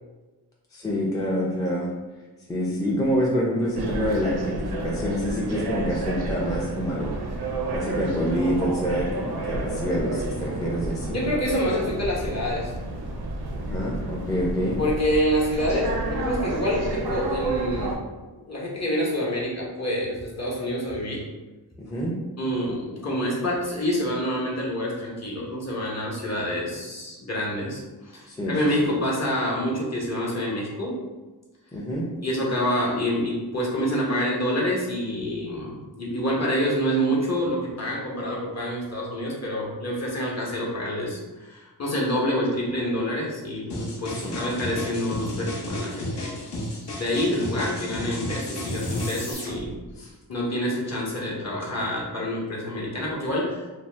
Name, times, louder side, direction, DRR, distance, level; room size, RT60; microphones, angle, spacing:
voice 1, 0.7-1.9 2.5-7.2 7.7-11.2 13.5-14.8 16.9-17.0 21.8-22.1 28.3-28.9 31.7-32.1 44.2-44.4 50.0-50.1, equal, 10° left, -4 dB, 0.4 m, -27 dB
sound 1, 3.8-18.0, right 2 dB, 70° right, 0.5 m, -31 dB
voice 2, 11.1-12.7 14.8-18.0 18.2-21.2 22.4-31.0 32.2-46.4 47.0-49.7 50.0-53.6, equal, 40° left, -4 dB, 0.8 m, -27 dB
sound 2, 43.7-49.3, left 1 dB, 85° left, 0.8 m, -32 dB
sound 3, 46.1-50.0, left 2 dB, 65° left, 1.0 m, -43 dB
2.7 x 2.0 x 3.2 m, 1.2 s
wide cardioid pair, 80°, 40 cm